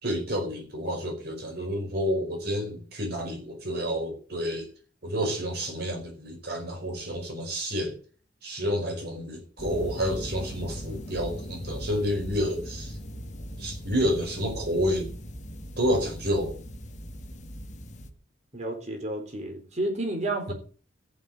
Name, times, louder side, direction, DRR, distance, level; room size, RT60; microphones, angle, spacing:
voice 1, 0.0-4.7 5.0-7.9 8.4-13.0 13.6-15.1 15.8-16.5 20.5-20.6, equal, 55° right, 5.0 m, -29 dB
sound 1, 9.6-18.1, equal, 40° left, 1.7 m, -39 dB
voice 2, 18.5-20.5, right 2 dB, 35° right, 4.1 m, -31 dB
14.5 x 6.3 x 9.0 m
head